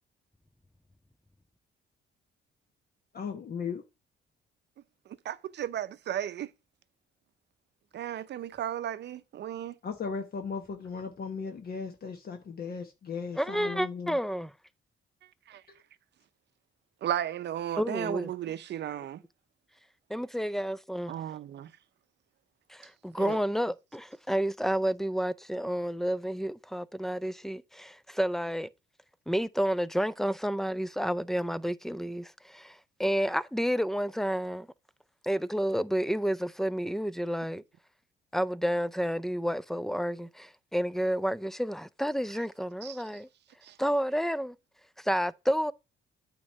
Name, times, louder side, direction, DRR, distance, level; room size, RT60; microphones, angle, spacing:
voice 1, 3.1-3.8 9.8-14.2, left 5 dB, 50° left, 1.0 m, -37 dB
voice 2, 5.2-6.5 7.9-9.7 15.5-15.6 17.0-19.2 21.1-21.7 23.2-23.4 42.8-43.0 43.6-43.8, right 11 dB, 60° right, 0.6 m, -34 dB
voice 3, 13.3-14.5 17.8-18.3 20.1-21.1 22.7-28.7 29.3-34.7 35.2-37.6 38.3-43.3 43.8-44.6 45.0-45.7, equal, ahead, 0.3 m, -30 dB
8.7 x 3.0 x 6.5 m
cardioid pair, 90°, 20 cm